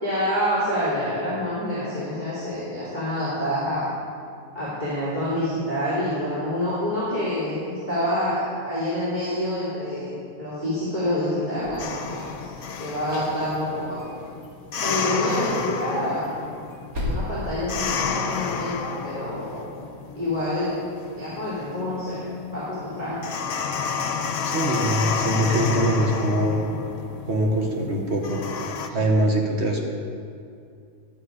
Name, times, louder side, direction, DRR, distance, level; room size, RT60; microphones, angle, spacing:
voice 1, 0.0-3.8 4.5-12.5 12.8-14.1 14.8-16.3 16.9-19.8 20.1-20.7 21.2-23.2 28.9-29.1, left 1 dB, 30° right, -10 dB, 2.9 m, -27 dB
sound 1, 11.5-12.7 13.0-14.2 14.4-14.5 14.9-15.1 15.3-15.4 15.8-18.4, left 1 dB, 80° right, 2.6 m, -35 dB
sound 2, 11.8-28.9, left 6 dB, 65° left, 1.0 m, -31 dB
voice 2, 24.4-26.6 27.2-29.8, right 1 dB, 50° right, 0 dB, 1.5 m, -23 dB
12.5 x 9.5 x 4.9 m, 2.4 s
omnidirectional pair, 1.5 m